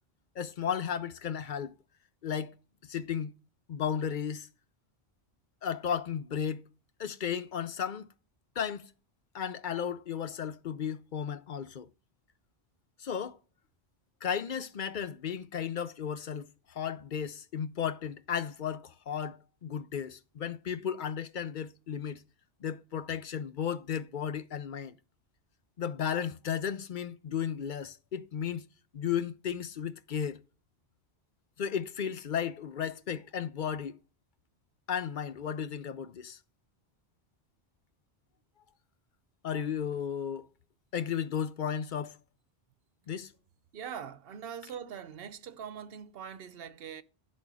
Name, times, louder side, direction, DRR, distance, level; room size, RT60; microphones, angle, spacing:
voice 1, 0.4-1.8 2.2-2.6 2.8-3.3 3.7-4.5 5.6-6.7 7.0-8.1 8.6-8.9 9.3-11.9 13.0-13.4 14.2-22.2 22.6-24.9 25.8-28.6 28.9-30.4 31.6-34.0 34.9-36.4 39.4-40.5 40.9-42.2 43.1-43.3, left 8 dB, 55° left, 0.7 m, -34 dB
voice 2, 43.7-47.0, right 8 dB, 65° right, 0.9 m, -42 dB
10.5 x 4.1 x 6.1 m
omnidirectional pair, 1.1 m